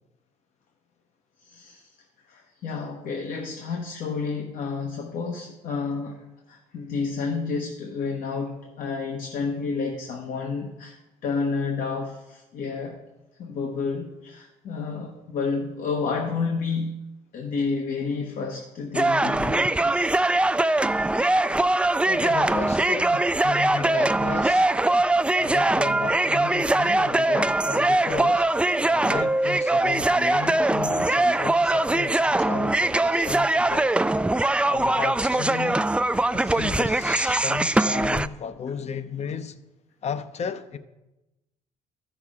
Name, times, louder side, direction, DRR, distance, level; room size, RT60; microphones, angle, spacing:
voice 1, 1.4-1.9 2.3-11.0 11.2-13.0 13.4-17.0 17.3-20.3, left 4 dB, 70° left, 1.2 m, -30 dB
sound 1, 18.9-38.3, right 2 dB, 5° right, 0.3 m, -22 dB
voice 2, 22.0-24.7 25.4-28.5 28.9-33.9 34.6-35.9 36.3-39.6 40.0-40.8, left 6 dB, 50° left, 0.8 m, -34 dB
13.5 x 6.1 x 3.7 m
supercardioid pair, 75°, 15 cm